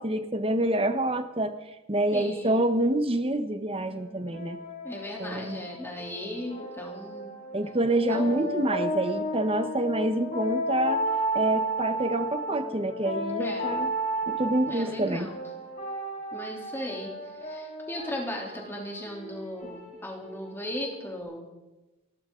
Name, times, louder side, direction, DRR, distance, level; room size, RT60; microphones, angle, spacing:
voice 1, 0.0-1.5 1.9-4.6 5.2-5.6 7.5-11.0 11.3-13.9 14.3-15.3, right 1 dB, 25° right, 9 dB, 1.1 m, -27 dB
voice 2, 2.1-2.6 4.8-7.3 8.1-8.6 13.4-13.8 14.7-15.4 16.3-21.4, equal, 10° left, -1 dB, 3.3 m, -37 dB
sound 1, 3.8-21.2, right 1 dB, 35° left, 7.4 m, -34 dB
29.5 x 12.5 x 3.9 m, 1.1 s
head